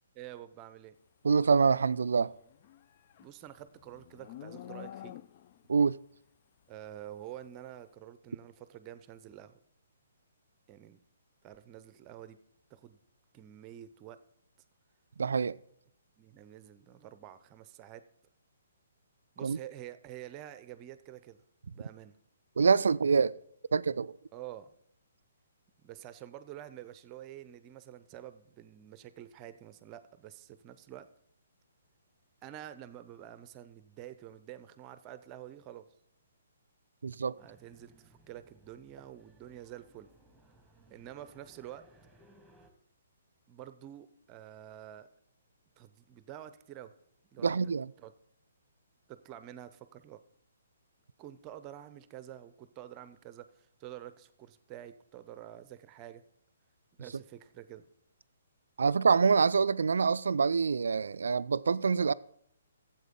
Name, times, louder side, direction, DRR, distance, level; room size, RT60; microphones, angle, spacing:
voice 1, 0.1-1.0 3.2-5.1 6.7-9.6 10.7-11.0 11.4-12.4 12.7-13.0 13.3-14.2 16.2-18.0 19.4-21.4 21.7-22.2 24.3-24.7 25.8-31.1 32.4-35.9 37.4-40.1 40.9-41.8 43.5-45.1 45.8-46.9 47.3-47.6 48.0-48.1 49.1-50.2 51.2-56.2 57.0-57.8, right 12 dB, 25° right, 0.6 m, -48 dB
voice 2, 1.2-2.3 5.7-6.0 15.2-15.6 19.4-19.6 22.6-23.4 23.7-24.2 37.0-37.4 47.4-47.9 58.8-62.1, right 5 dB, 65° right, 0.3 m, -26 dB
Livestock farm animals working animals, 2.4-5.7, left 11 dB, 40° left, 0.3 m, -48 dB
sound 1, 37.4-42.7, right 1 dB, ahead, 1.4 m, -62 dB
12.5 x 7.7 x 3.7 m
figure-of-eight pair, 130°, 0 cm